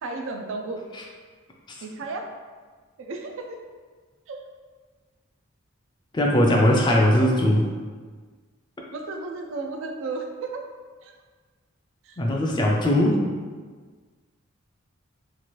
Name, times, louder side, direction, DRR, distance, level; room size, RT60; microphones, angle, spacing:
voice 1, 0.0-0.8 1.8-2.3 3.0-3.6 4.3-4.4 8.9-10.6 11.0-11.2 12.1-12.2, right 3 dB, 65° right, 4 dB, 0.3 m, -33 dB
voice 2, 6.1-7.7 12.2-13.2, equal, 20° left, -1 dB, 0.3 m, -19 dB
2.9 x 2.4 x 3.0 m, 1.5 s
head